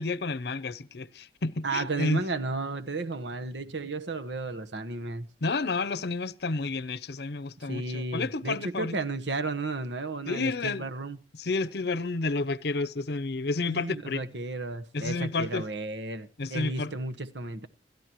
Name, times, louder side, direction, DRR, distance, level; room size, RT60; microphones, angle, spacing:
voice 1, 0.0-2.2 5.4-9.0 10.3-10.8 11.4-14.2 14.9-15.7 16.4-16.9, left 3 dB, 65° left, 0.7 m, -30 dB
voice 2, 1.6-5.3 7.7-11.2 13.7-17.7, right 3 dB, 90° right, 1.2 m, -33 dB
28.0 x 13.5 x 3.1 m
head